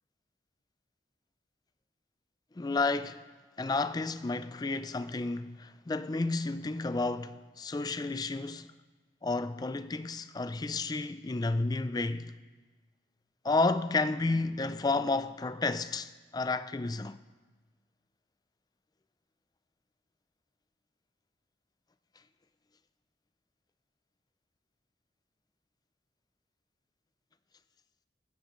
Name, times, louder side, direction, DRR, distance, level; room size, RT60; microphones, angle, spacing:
voice 1, 2.6-3.2 3.6-8.7 9.2-12.3 13.4-17.2, left 3 dB, 20° left, 0.4 m, -31 dB
15.5 x 14.5 x 3.1 m
head